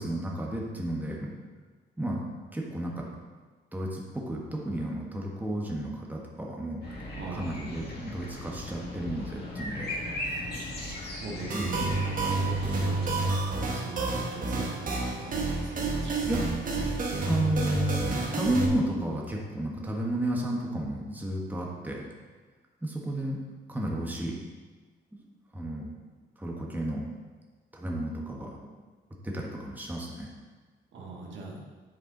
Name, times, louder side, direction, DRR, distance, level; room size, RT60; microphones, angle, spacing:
voice 1, 0.0-1.3 2.0-2.2 2.5-3.1 3.7-7.0 7.3-9.9 11.5-12.0 16.3-16.4 17.3-22.0 22.8-23.4 23.7-24.4 25.1-25.2 25.5-25.9 26.4-27.1 27.7-28.5 29.2-30.3, right 1 dB, 10° right, -2 dB, 1.4 m, -32 dB
sound 1, 6.8-13.1, left 1 dB, 55° left, 1.9 m, -38 dB
voice 2, 7.2-7.7 11.2-16.3 30.9-31.6, right 3 dB, 70° right, -1 dB, 1.5 m, -40 dB
sound 2, 11.5-18.7, right 3 dB, 45° right, 1.3 m, -29 dB
8.5 x 4.8 x 3.9 m, 1.4 s
cardioid pair, 90°, 20 cm